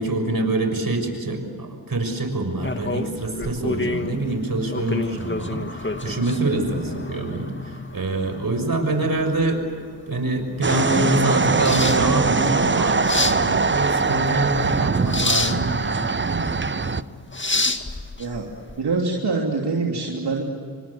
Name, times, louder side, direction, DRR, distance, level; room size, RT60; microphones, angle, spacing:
voice 1, 0.0-9.6 10.1-17.0, right 2 dB, 60° right, 6 dB, 6.1 m, -25 dB
sound 1, 2.6-18.8, left 2 dB, 30° left, 2.1 m, -30 dB
sound 2, 10.6-17.0, right 4 dB, 30° right, 0.8 m, -22 dB
voice 2, 18.8-20.4, right 3 dB, 80° right, -1 dB, 3.3 m, -24 dB
28.0 x 25.0 x 7.2 m, 2.1 s
cardioid pair, 50°, 39 cm